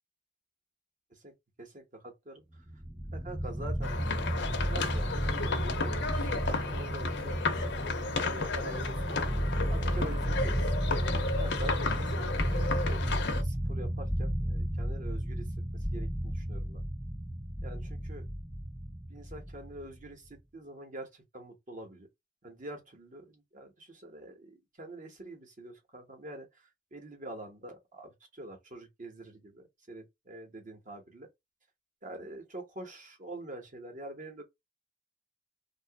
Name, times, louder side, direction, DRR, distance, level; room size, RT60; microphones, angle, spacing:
voice 1, 1.1-2.4 3.1-5.5 5.8-7.7 8.1-9.3 9.7-10.7 11.4-15.5 15.7-16.8 17.6-18.2 19.1-22.1 22.4-31.3 32.0-34.4, right 2 dB, 45° right, 1.0 m, -46 dB
sound 1, 2.7-20.0, equal, 5° right, 0.4 m, -33 dB
sound 2, 3.8-13.4, left 4 dB, 65° left, 0.6 m, -34 dB
2.8 x 2.4 x 3.5 m
head